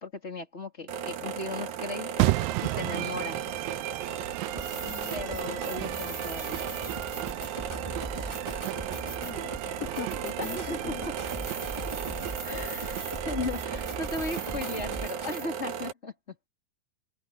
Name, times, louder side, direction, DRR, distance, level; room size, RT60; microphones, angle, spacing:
voice 1, 0.0-2.3 2.6-3.5 5.1-6.7 10.4-10.9 12.4-16.3, left 3 dB, 20° left, 3.1 m, -36 dB
sound 1, 0.9-15.9, right 8 dB, 60° right, 2.4 m, -36 dB
sound 2, 2.2-15.1, right 19 dB, 85° right, 2.0 m, -35 dB
sound 3, 4.5-15.5, right 1 dB, 15° right, 0.9 m, -39 dB
voice 2, 4.8-5.1 5.4-5.6 9.2-9.5 9.8-11.1, left 17 dB, 85° left, 3.1 m, -40 dB
omnidirectional pair, 4.7 m